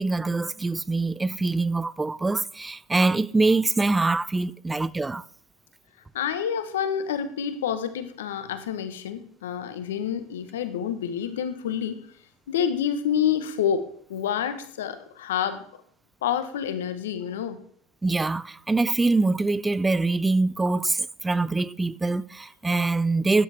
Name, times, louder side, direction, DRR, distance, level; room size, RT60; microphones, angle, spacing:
voice 1, 0.0-5.2 18.0-23.4, right 3 dB, 15° right, 0.4 m, -24 dB
voice 2, 6.1-12.0 12.5-13.8 14.1-15.6 16.2-17.6, left 8 dB, 85° left, 1.1 m, -28 dB
12.0 x 9.9 x 3.5 m
hypercardioid pair, 90°, 0 cm